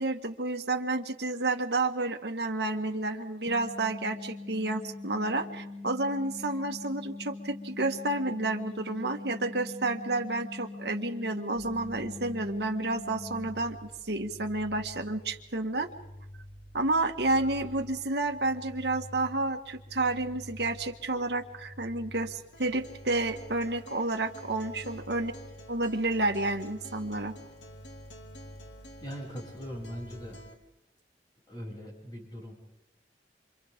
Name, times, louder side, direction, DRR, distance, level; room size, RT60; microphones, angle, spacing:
voice 1, 0.0-13.8 14.0-15.9 16.7-25.3 25.7-27.3, right 2 dB, 70° right, 4 dB, 1.7 m, -30 dB
sound 1, 3.5-13.5, left 3 dB, 5° right, 1.3 m, -42 dB
sound 2, 11.5-30.5, equal, 60° left, 6.1 m, -49 dB
Acoustic guitar, 22.5-30.5, equal, 90° left, 2.2 m, -51 dB
voice 2, 29.0-30.4 31.5-32.5, equal, 25° left, -2 dB, 7.4 m, -40 dB
28.0 x 27.0 x 3.7 m, 0.94 s
head